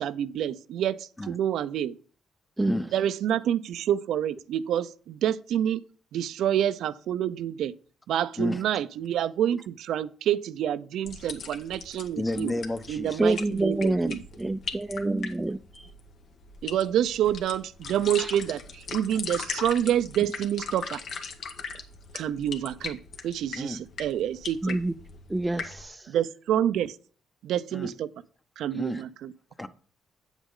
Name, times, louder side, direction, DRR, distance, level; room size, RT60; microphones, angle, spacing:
voice 1, 0.0-2.0 2.9-5.8 6.1-7.7 8.1-12.5 12.9-14.2 16.6-21.0 22.1-23.0 23.2-24.8 26.1-27.0 27.4-28.1 28.6-29.3, right 10 dB, 80° right, 0.5 m, -28 dB
sound 1, 11.0-25.8, left 5 dB, 65° left, 1.6 m, -40 dB
voice 2, 12.2-13.3 23.6-23.8 27.7-27.9 28.7-29.1 29.6-29.7, left 1 dB, 15° left, 0.9 m, -31 dB
voice 3, 13.2-14.1 14.4-14.6 14.9-15.9 18.2-18.3 24.6-24.9 25.3-26.1, right 2 dB, 15° right, 0.5 m, -27 dB
8.2 x 8.1 x 3.8 m
cardioid pair, 90°, 0 cm